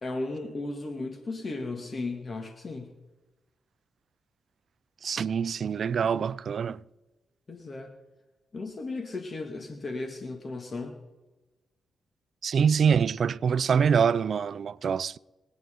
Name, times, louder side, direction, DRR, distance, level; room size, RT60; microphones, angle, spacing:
voice 1, 0.0-2.9 7.5-7.9 8.5-11.0, left 3 dB, 45° left, 2.1 m, -35 dB
voice 2, 5.0-6.8 12.4-15.2, right 7 dB, 65° right, 0.4 m, -25 dB
25.0 x 9.3 x 3.8 m
supercardioid pair, 55°, 0 cm